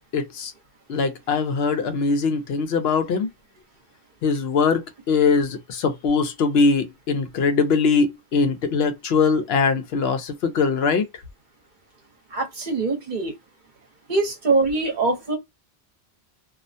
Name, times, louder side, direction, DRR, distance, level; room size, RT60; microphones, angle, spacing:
voice 1, 0.1-0.5 0.9-3.3 4.2-11.1, left 4 dB, 75° left, 0.8 m, -21 dB
voice 2, 12.3-13.3 14.1-15.4, right 3 dB, 50° right, 0.9 m, -23 dB
2.4 x 2.1 x 2.5 m
omnidirectional pair, 1.1 m